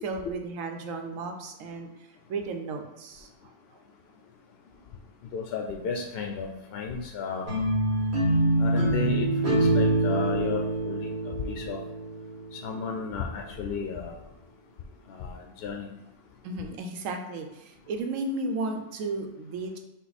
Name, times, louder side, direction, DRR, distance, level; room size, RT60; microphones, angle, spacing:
voice 1, 0.0-1.9 2.3-3.3 16.4-19.8, right 3 dB, 90° right, 5 dB, 1.1 m, -34 dB
voice 2, 5.3-7.6 8.6-11.1 11.5-11.8 12.5-14.2 15.1-15.9, left 4 dB, 65° left, 2 dB, 0.6 m, -33 dB
sound 1, 7.5-12.6, right 1 dB, 55° right, 1.7 m, -25 dB
5.4 x 2.3 x 4.1 m, 0.99 s
omnidirectional pair, 1.3 m